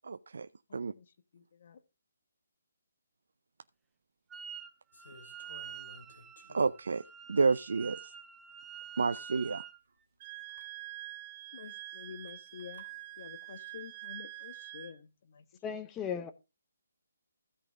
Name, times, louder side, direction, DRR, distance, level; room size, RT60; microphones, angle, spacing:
voice 1, 0.1-0.9 6.5-7.0 7.3-8.1 9.0-9.6, right 4 dB, 75° right, 0.5 m, -30 dB
voice 2, 0.7-1.8 11.5-12.8 13.2-15.8, left 7 dB, 50° left, 1.2 m, -49 dB
Wind instrument woodwind instrument, 4.3-4.7 5.0-9.8, right 8 dB, 10° right, 0.5 m, -47 dB
sound 1, 4.9-6.9 7.6-7.7 8.8-8.9 9.1-9.5 10.4-10.7 12.3-12.9, left 3 dB, 75° left, 2.9 m, -56 dB
Wind instrument woodwind instrument 2, 10.2-14.9, right 18 dB, 30° right, 1.0 m, -46 dB
voice 3, 15.6-16.3, left 7 dB, 15° left, 0.9 m, -36 dB
15.5 x 5.2 x 3.5 m
hypercardioid pair, 155°, 0 cm